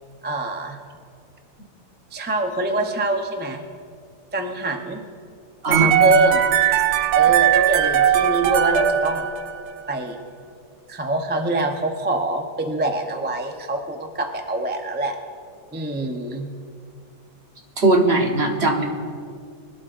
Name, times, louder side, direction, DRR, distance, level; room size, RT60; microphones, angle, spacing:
voice 1, 0.2-0.8 2.1-3.6 4.3-5.0 5.6-6.5 7.1-9.3 9.9-10.2 10.9-15.1 15.7-16.5, right 1 dB, 10° right, 3 dB, 0.5 m, -25 dB
sound 1, 5.7-9.8, right 10 dB, 80° right, 1.2 m, -19 dB
voice 2, 17.8-18.8, right 2 dB, 45° right, 1 dB, 1.4 m, -19 dB
23.0 x 12.0 x 2.6 m, 2.2 s
omnidirectional pair, 1.7 m